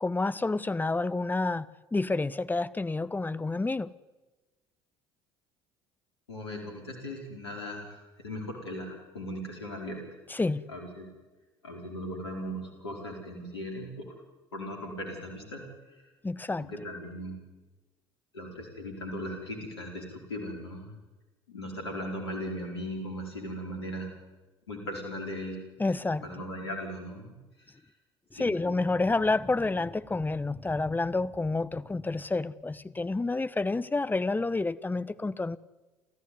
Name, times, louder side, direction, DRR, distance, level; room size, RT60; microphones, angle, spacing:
voice 1, 0.0-3.9 10.3-10.7 16.2-16.7 25.8-26.2 28.3-35.6, left 3 dB, 15° left, 17 dB, 1.0 m, -29 dB
voice 2, 6.3-10.0 10.7-11.1 11.6-14.1 14.5-16.1 16.6-17.4 18.3-20.9 21.5-24.1 24.7-25.6 26.2-27.7 28.3-28.5, equal, 85° left, 2 dB, 4.8 m, -38 dB
29.5 x 14.5 x 9.6 m, 1.2 s
hypercardioid pair, 60°, 13 cm